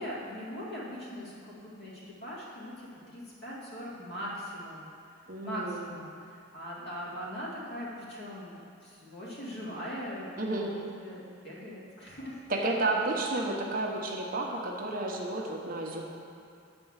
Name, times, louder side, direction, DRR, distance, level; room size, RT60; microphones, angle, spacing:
voice 1, 0.0-4.9 5.4-12.4, equal, 55° left, -7 dB, 2.2 m, -41 dB
voice 2, 5.3-5.9 10.4-10.7 12.5-16.0, right 2 dB, 45° right, 0 dB, 0.9 m, -31 dB
8.9 x 4.3 x 7.2 m, 2.4 s
head